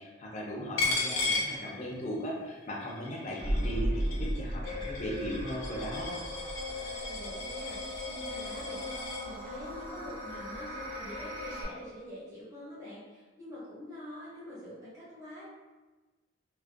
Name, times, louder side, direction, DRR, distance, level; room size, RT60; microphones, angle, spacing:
voice 1, 0.0-6.1, equal, 35° left, -2 dB, 0.4 m, -37 dB
Coin (dropping), 0.8-2.3 2.6-9.2, left 3 dB, 85° left, 0.5 m, -36 dB
sound 1, 3.4-7.1 7.4-7.5, right 1 dB, 40° right, 0.4 m, -34 dB
sound 2, 4.6-11.6, left 1 dB, 75° right, 0.9 m, -40 dB
voice 2, 6.8-15.4, left 1 dB, 15° right, -11 dB, 0.7 m, -45 dB
2.4 x 2.1 x 2.5 m, 1.2 s
head